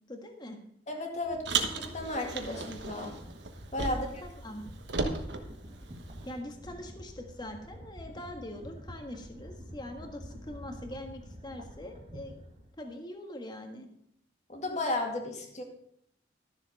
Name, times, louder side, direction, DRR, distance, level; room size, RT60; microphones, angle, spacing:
voice 1, 0.1-0.6 3.9-4.6 6.2-12.3 12.8-13.9, left 1 dB, 25° left, 4 dB, 1.5 m, -43 dB
voice 2, 0.9-3.1 3.7-4.2 14.5-15.6, left 2 dB, 40° left, 2 dB, 2.2 m, -34 dB
sound 1, 1.1-12.7, equal, 35° right, 2.2 m, -48 dB
Car, 1.5-4.3 4.5-6.3, right 4 dB, 75° right, 1.2 m, -35 dB
13.0 x 7.2 x 5.3 m, 0.72 s
head